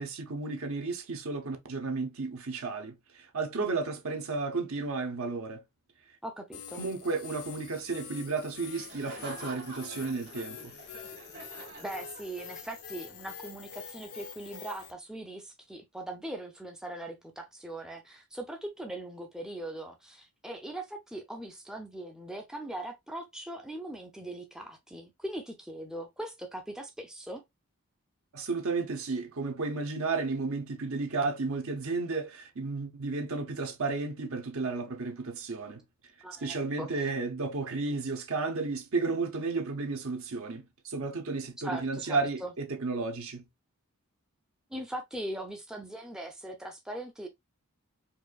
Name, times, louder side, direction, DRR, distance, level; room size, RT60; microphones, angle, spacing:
voice 1, 0.0-5.6 6.8-10.7 28.3-35.8 36.4-43.4, right 3 dB, 70° right, 0.9 m, -33 dB
voice 2, 6.2-6.8 11.8-27.4 36.2-37.0 41.6-42.5 44.7-47.3, right 1 dB, 5° right, 0.4 m, -40 dB
sound 1, 6.5-14.9, left 7 dB, 85° left, 0.7 m, -46 dB
Laughter, 8.7-12.6, right 2 dB, 50° right, 1.2 m, -47 dB
4.5 x 2.5 x 2.3 m
head